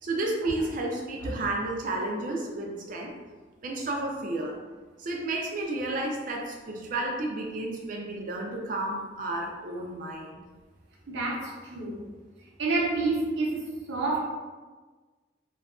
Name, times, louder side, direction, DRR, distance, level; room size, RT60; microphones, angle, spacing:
voice 1, 0.0-3.1 3.6-4.6 5.0-10.4, right 2 dB, 45° right, 0 dB, 0.4 m, -32 dB
voice 2, 11.1-12.0 12.6-14.2, right 3 dB, 75° right, -4 dB, 0.7 m, -28 dB
2.7 x 2.3 x 2.3 m, 1.3 s
head